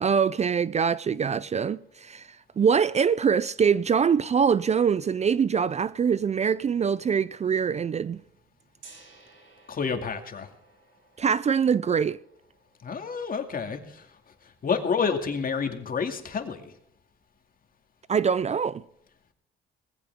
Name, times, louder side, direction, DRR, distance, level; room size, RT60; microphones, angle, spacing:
voice 1, 0.0-2.3 2.6-8.2 11.2-12.2 18.1-18.8, right 6 dB, 35° right, 0.4 m, -24 dB
Gong, 8.8-14.7, right 3 dB, 75° right, 6.4 m, -57 dB
voice 2, 9.7-10.5 12.8-14.1 14.6-16.7, left 5 dB, 45° left, 2.4 m, -29 dB
19.5 x 15.5 x 3.6 m
cardioid pair, 90°, 20 cm